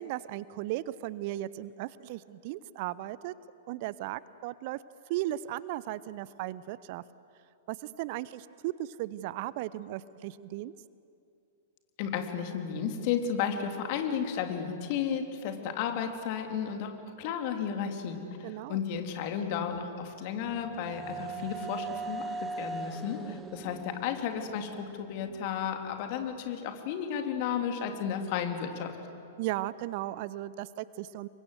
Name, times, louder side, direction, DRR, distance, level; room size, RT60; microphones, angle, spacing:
voice 1, 0.0-3.3 3.7-4.8 5.1-7.0 7.7-10.7 18.4-18.8 29.4-31.3, right 15 dB, 45° right, 19 dB, 0.6 m, -36 dB
voice 2, 12.0-16.9 17.2-29.0, left 7 dB, 45° left, 5 dB, 3.0 m, -33 dB
sound 1, 19.6-25.5, right 3 dB, 20° right, 1.3 m, -40 dB
28.0 x 23.5 x 7.9 m, 2.6 s
figure-of-eight pair, 100°, 0 cm